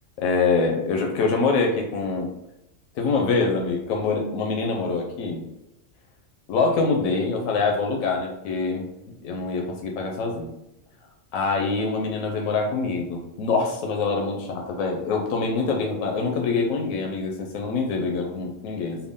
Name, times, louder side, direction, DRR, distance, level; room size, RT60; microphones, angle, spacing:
voice 1, 0.2-2.3 3.0-5.4 6.5-8.8 9.2-10.5 11.3-19.0, left 4 dB, 85° left, 1 dB, 1.0 m, -25 dB
3.5 x 2.2 x 3.5 m, 0.90 s
omnidirectional pair, 1.4 m